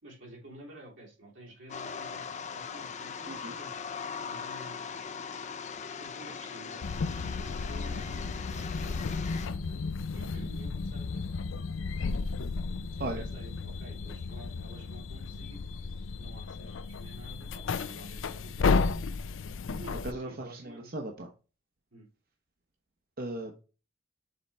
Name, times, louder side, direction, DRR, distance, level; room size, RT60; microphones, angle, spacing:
voice 1, 0.0-3.9 4.2-5.1 6.0-11.4 12.9-15.6 16.2-18.8 19.8-21.0 21.9-22.1, right 1 dB, 80° right, -3 dB, 3.4 m, -50 dB
sound 1, 1.7-9.5, left 6 dB, 40° left, 0.5 m, -40 dB
sound 2, 6.8-20.1, left 4 dB, 90° left, 0.5 m, -33 dB
voice 2, 20.0-21.3 23.2-23.6, right 2 dB, 50° right, 3 dB, 0.9 m, -37 dB
6.8 x 4.2 x 3.4 m, 0.33 s
head